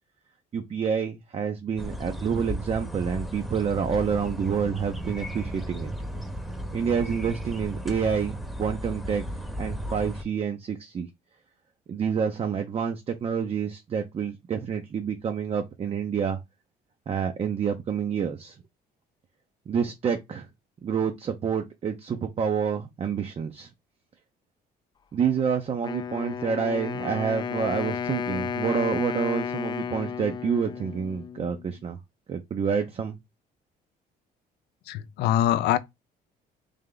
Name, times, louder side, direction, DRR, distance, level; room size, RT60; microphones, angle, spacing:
voice 1, 0.5-5.9 6.7-9.2 9.6-11.1 11.9-16.4 17.1-18.6 19.7-20.5 20.8-23.7 25.1-32.0 32.3-33.2, right 6 dB, 35° right, 0.6 m, -28 dB
sound 1, 1.8-10.2, equal, ahead, 0.9 m, -35 dB
Wind instrument woodwind instrument, 25.8-31.8, left 7 dB, 25° left, 0.4 m, -33 dB
voice 2, 34.9-35.8, left 12 dB, 80° left, 0.6 m, -23 dB
3.4 x 3.2 x 3.8 m
cardioid pair, 110°, 17 cm